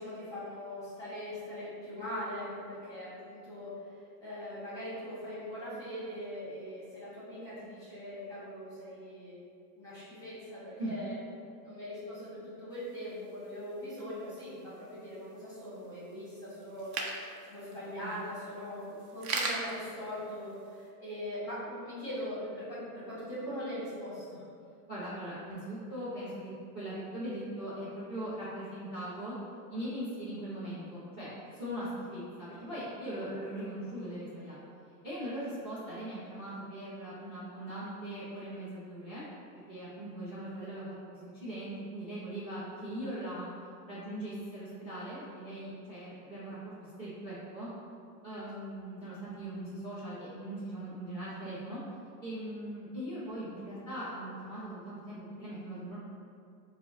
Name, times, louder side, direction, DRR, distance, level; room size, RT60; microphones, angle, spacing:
voice 1, 0.0-9.4 9.8-11.1 11.6-17.1 17.5-24.4 48.3-48.4, equal, 5° left, -10 dB, 1.0 m, -41 dB
sound 1, 12.7-20.9, right 4 dB, 65° right, 0.7 m, -42 dB
voice 2, 24.9-29.3 29.7-34.6 35.0-39.2 39.7-43.5 43.9-47.7 48.2-51.8 52.2-56.0, right 1 dB, 15° right, -11 dB, 0.7 m, -40 dB
4.5 x 2.1 x 3.8 m, 2.4 s
supercardioid pair, 165°, 46 cm